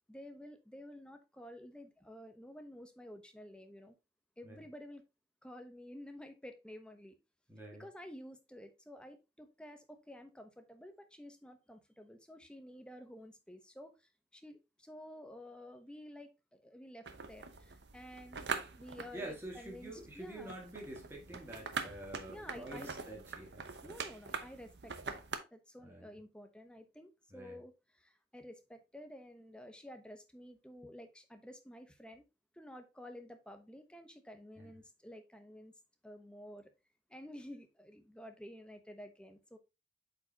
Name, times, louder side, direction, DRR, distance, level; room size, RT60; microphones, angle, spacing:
voice 1, 0.1-4.0 4.4-5.0 5.4-7.2 7.8-18.5 18.8-20.5 22.3-22.9 23.8-25.2 25.5-32.2 32.5-35.7 36.0-36.7 37.1-39.6, left 1 dB, 5° left, 0.9 m, -51 dB
voice 2, 7.5-7.9 19.1-23.7 25.8-26.1 27.3-27.6 34.6-34.7, right 1 dB, 15° right, 1.9 m, -47 dB
sound 1, 17.1-25.4, right 5 dB, 80° right, 0.9 m, -44 dB
8.1 x 5.1 x 2.9 m
head